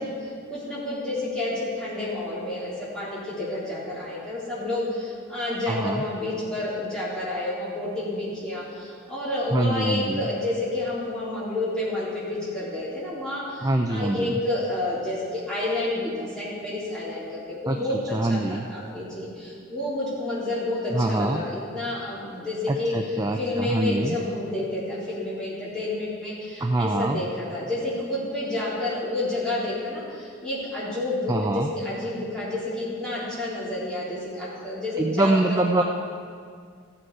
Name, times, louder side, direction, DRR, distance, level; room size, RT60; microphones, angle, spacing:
voice 1, 0.0-35.8, left 2 dB, 5° left, -10 dB, 3.6 m, -30 dB
voice 2, 5.7-6.0 9.5-10.2 13.6-14.4 17.7-18.7 20.9-21.4 22.7-24.2 26.6-27.2 31.3-31.7 35.0-35.8, right 2 dB, 15° right, 4 dB, 0.4 m, -24 dB
15.0 x 8.8 x 4.7 m, 2.1 s
head